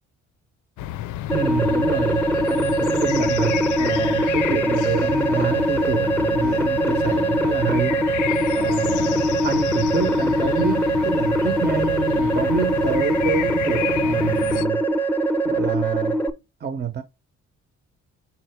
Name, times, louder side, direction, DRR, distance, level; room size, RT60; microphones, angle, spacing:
sound 1, 0.8-14.7, left 14 dB, 80° left, 0.5 m, -30 dB
sound 2, 1.3-16.3, right 1 dB, 5° left, 0.9 m, -22 dB
voice 1, 1.3-8.3 8.5-14.8 15.4-16.2 16.6-17.0, right 7 dB, 35° right, 0.9 m, -28 dB
5.8 x 4.3 x 4.4 m
cardioid pair, 90°, 30 cm